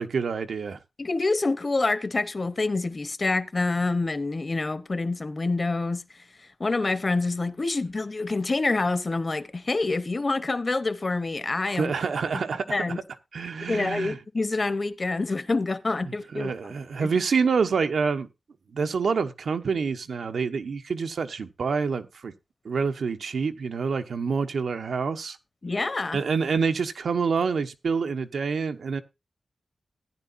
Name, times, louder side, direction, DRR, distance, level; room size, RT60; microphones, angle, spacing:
voice 1, 0.0-0.8 11.7-12.8 13.3-14.2 16.3-18.3 18.7-22.3 22.6-25.4 26.1-29.0, right 5 dB, 80° right, 1.0 m, -27 dB
voice 2, 1.0-6.0 6.6-11.9 12.7-13.0 13.6-16.5 17.0-17.1 25.6-26.2, left 3 dB, 35° left, 0.9 m, -27 dB
15.0 x 10.0 x 2.6 m
wide cardioid pair, 150°, 0 cm